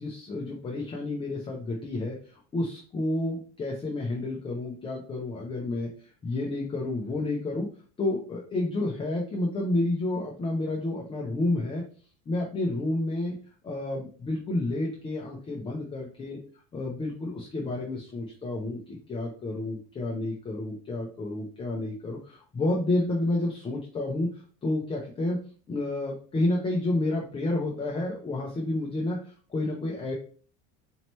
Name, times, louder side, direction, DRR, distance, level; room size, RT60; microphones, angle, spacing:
voice 1, 0.0-5.9 6.2-7.7 8.0-11.8 12.3-13.4 13.6-16.4 16.7-24.3 24.6-25.4 25.7-29.2 29.5-30.1, left 2 dB, 15° left, -2 dB, 0.5 m, -30 dB
4.3 x 2.9 x 3.0 m, 0.42 s
cardioid pair, 150°, 33 cm